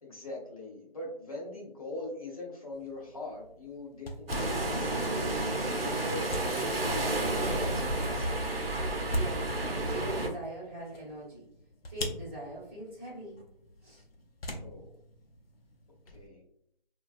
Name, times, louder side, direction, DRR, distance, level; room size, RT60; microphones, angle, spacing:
voice 1, 0.0-5.4 5.7-6.4 6.7-8.3 14.6-14.9 16.1-16.4, left 2 dB, 40° left, -3 dB, 0.7 m, -42 dB
sound 1, 2.7-16.3, left 1 dB, 80° left, 0.6 m, -44 dB
sound 2, 4.3-10.3, right 2 dB, 80° right, 0.6 m, -31 dB
voice 2, 9.1-9.5 9.8-11.5 11.9-13.4 13.8-14.0, right 1 dB, 15° right, -13 dB, 1.0 m, -41 dB
2.3 x 2.3 x 2.4 m, 0.69 s
figure-of-eight pair, 175°, 29 cm